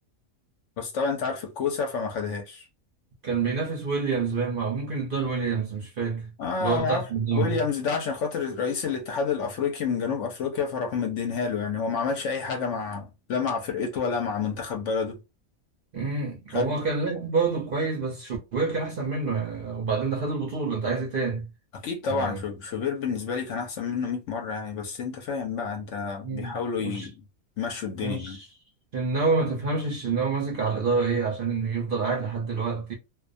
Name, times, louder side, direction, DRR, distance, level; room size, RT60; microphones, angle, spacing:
voice 1, 0.8-2.6 6.4-7.1 7.3-15.2 16.5-16.7 21.7-27.1 27.6-28.4, left 5 dB, 65° left, 0.8 m, -29 dB
voice 2, 3.2-6.3 6.6-7.6 15.9-21.5 22.1-22.4 26.2-27.1 28.0-28.5 28.9-32.9, right 4 dB, 55° right, 0.6 m, -27 dB
2.4 x 2.2 x 2.4 m
omnidirectional pair, 1.5 m